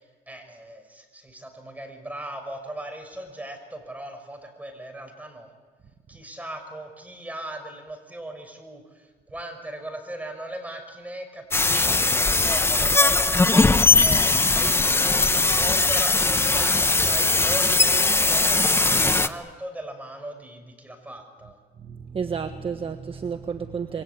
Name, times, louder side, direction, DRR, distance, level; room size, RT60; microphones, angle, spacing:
voice 1, 0.3-5.5 6.1-14.6 14.9-21.6, right 1 dB, 10° right, 5 dB, 6.1 m, -38 dB
sound 1, 11.5-19.3, left 3 dB, 15° left, 1.0 m, -20 dB
voice 2, 21.8-24.0, right 6 dB, 35° right, 7 dB, 1.3 m, -31 dB
28.0 x 22.5 x 8.5 m, 1.4 s
cardioid pair, 110°, 17 cm